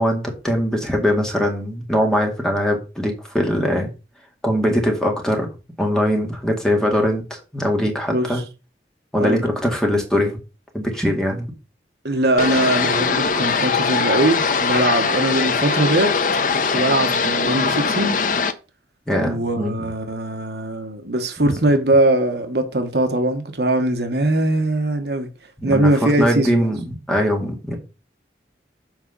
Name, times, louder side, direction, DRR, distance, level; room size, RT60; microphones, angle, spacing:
voice 1, 0.0-3.9 4.4-5.5 5.8-8.4 9.1-10.4 10.7-11.5 19.1-19.9 21.5-21.6 25.6-25.9 26.2-27.8, equal, 5° left, 2.1 m, -21 dB
voice 2, 8.1-8.4 9.2-9.4 12.0-16.1 16.7-18.2 19.2-25.3 25.6-26.7, right 1 dB, 65° right, 1.3 m, -21 dB
sound 1, 12.4-18.5, left 5 dB, 45° left, 0.7 m, -21 dB
7.8 x 5.0 x 5.4 m
head